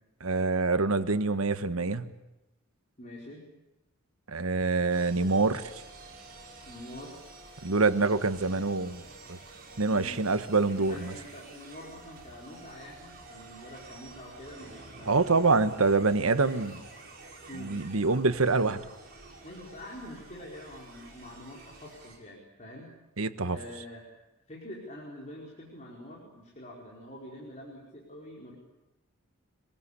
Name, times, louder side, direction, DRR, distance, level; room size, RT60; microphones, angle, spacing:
voice 1, 0.2-2.1 4.3-5.6 7.6-9.0 9.3-9.4 9.8-11.1 15.1-16.8 17.6-18.8 23.2-23.6, right 3 dB, 90° right, 11 dB, 1.3 m, -25 dB
voice 2, 1.0-1.4 3.0-3.4 6.6-7.1 9.9-10.2 10.7-15.5 17.5-18.2 19.4-22.9 23.4-24.0 24.5-28.6, left 1 dB, 35° left, -3 dB, 4.7 m, -46 dB
sound 1, 4.9-22.2, right 2 dB, 45° right, 6.7 m, -49 dB
26.0 x 21.0 x 8.3 m, 0.97 s
head